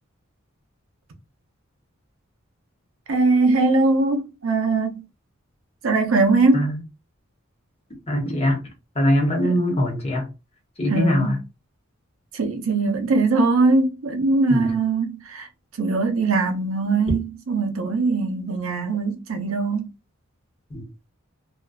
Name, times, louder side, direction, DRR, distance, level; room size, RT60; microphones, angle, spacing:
voice 1, 3.1-5.0 5.8-6.7 9.4-9.5 10.9-11.4 12.3-15.5 15.8-19.9, right 3 dB, 70° right, 0.5 m, -21 dB
voice 2, 8.1-8.6 8.9-10.3 10.8-11.4 14.5-14.7 20.7-20.8, left 1 dB, 30° left, 0.8 m, -22 dB
2.5 x 2.1 x 2.3 m
head